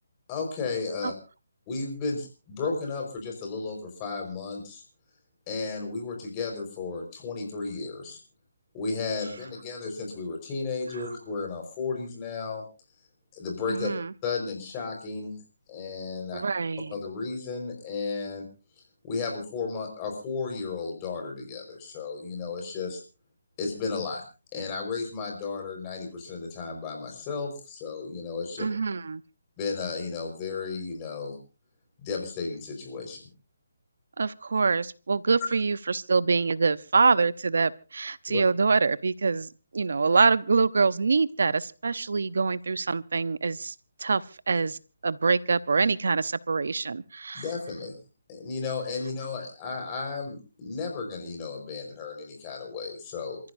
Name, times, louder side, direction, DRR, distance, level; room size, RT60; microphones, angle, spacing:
voice 1, 0.3-1.1 1.7-4.8 5.5-8.2 8.7-12.6 13.3-13.9 14.2-15.4 15.7-16.4 16.9-18.4 19.0-23.0 23.6-24.2 24.5-28.7 29.6-31.4 32.0-33.3 38.3-38.4 47.3-48.0 48.3-53.4, left 4 dB, 25° left, 2 dB, 4.8 m, -33 dB
voice 2, 13.7-14.1 16.3-16.9 28.6-29.2 34.2-43.7 44.0-47.4, right 4 dB, 70° right, 17 dB, 0.8 m, -25 dB
28.0 x 14.5 x 2.7 m, 0.32 s
hypercardioid pair, 160°, 0 cm